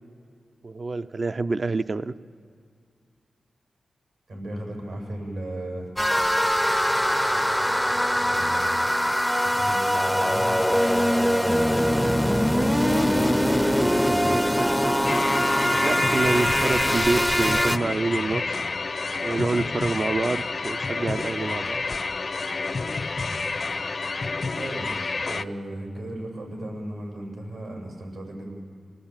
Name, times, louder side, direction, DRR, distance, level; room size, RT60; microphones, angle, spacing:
voice 1, 0.6-2.1 15.8-18.6 19.2-21.8, right 3 dB, 50° right, 11 dB, 0.6 m, -27 dB
voice 2, 4.3-5.9 8.2-8.8 9.4-13.3 13.7-14.4 23.3-23.5 24.5-28.5, right 1 dB, 90° right, 0 dB, 7.3 m, -36 dB
sound 1, 6.0-17.8, equal, ahead, 0.6 m, -22 dB
sound 2, 15.0-25.4, left 4 dB, 55° left, 0.7 m, -29 dB
27.5 x 19.0 x 8.9 m, 2.2 s
cardioid pair, 70°, 0 cm